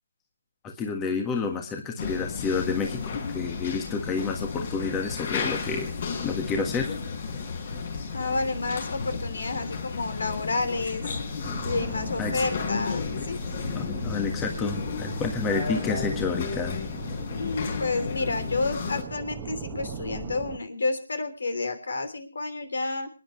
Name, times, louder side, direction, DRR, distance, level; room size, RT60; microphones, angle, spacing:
voice 1, 0.6-5.9 6.2-6.9 12.2-12.4 13.7-16.8, left 4 dB, 15° left, 3 dB, 1.6 m, -29 dB
sound 1, 2.0-19.0, left 5 dB, 45° left, 4.9 m, -33 dB
voice 2, 8.1-11.0 11.6-13.4 17.3-23.1, left 3 dB, 70° left, 10 dB, 3.3 m, -30 dB
sound 2, 11.4-20.6, right 7 dB, 20° right, 1.4 m, -41 dB
27.0 x 10.5 x 3.2 m, 0.32 s
figure-of-eight pair, 155°, 0 cm